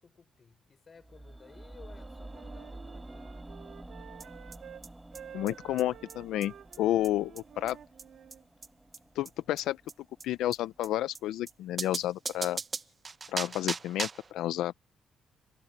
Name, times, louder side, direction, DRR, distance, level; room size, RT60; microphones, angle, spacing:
voice 1, 0.0-3.3, left 5 dB, 40° left, 5.4 m, -56 dB
sound 1, 1.0-11.1 11.4-11.5, right 1 dB, 15° right, 2.3 m, -49 dB
Wind instrument woodwind instrument, 2.0-4.9 5.1-8.4, right 9 dB, 65° right, 1.8 m, -50 dB
sound 2, 4.2-4.3 4.5-4.6 4.8-4.9 5.2-5.3 5.5-5.6 5.8-5.9 6.1-6.2 6.4-6.5 6.7-6.8 7.0-7.1 7.4-7.5 7.7-7.8 8.0-8.1 8.3-8.4 8.6-8.7 8.9-9.0 9.3-9.4 9.6-9.7 9.9-10.0 10.2-10.3 10.5-10.6 10.8-10.9 11.2-11.3 11.5-11.6 11.8-14.3, right 4 dB, 35° right, 0.9 m, -37 dB
voice 2, 5.3-6.5 6.8-7.8 9.2-9.8 10.2-12.6 13.3-14.7, left 13 dB, 85° left, 0.5 m, -30 dB
cardioid pair, 90°, 0 cm